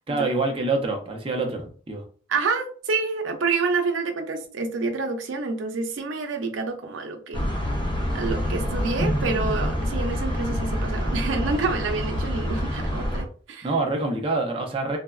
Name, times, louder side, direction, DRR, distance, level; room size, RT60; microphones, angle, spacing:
voice 1, 0.1-2.0 13.6-15.0, right 3 dB, 30° right, 0.4 m, -26 dB
voice 2, 2.3-7.5 8.1-13.7, right 4 dB, 85° right, 0.5 m, -28 dB
sound 1, 7.3-13.2, equal, 25° left, 0.6 m, -26 dB
3.3 x 2.0 x 2.3 m
head